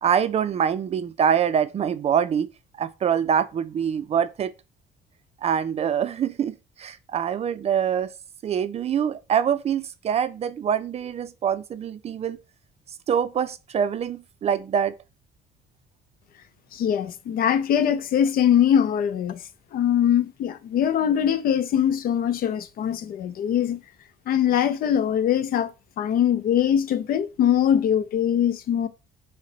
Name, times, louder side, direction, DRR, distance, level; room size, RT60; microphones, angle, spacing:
voice 1, 0.0-2.5 2.8-4.5 5.4-8.1 8.4-12.4 13.1-15.0, right 8 dB, 40° right, 0.4 m, -24 dB
voice 2, 16.7-23.8 24.3-25.7 26.0-28.9, left 9 dB, 60° left, 0.6 m, -22 dB
6.3 x 2.1 x 3.9 m
cardioid pair, 110°, 17 cm